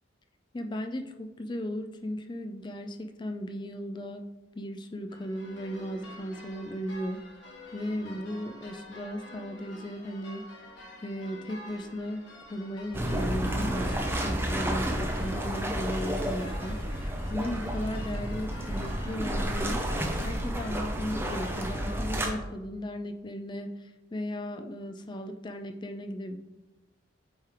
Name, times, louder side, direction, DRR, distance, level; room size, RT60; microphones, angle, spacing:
voice 1, 0.5-4.3 4.6-7.2 7.7-10.5 11.0-19.9 20.2-26.4, equal, 20° left, 6 dB, 0.4 m, -36 dB
sound 1, 5.1-20.7, left 1 dB, 55° left, 1.5 m, -48 dB
sound 2, 12.9-22.3, right 1 dB, 10° right, 0.7 m, -31 dB
8.3 x 3.3 x 4.4 m, 1.0 s
head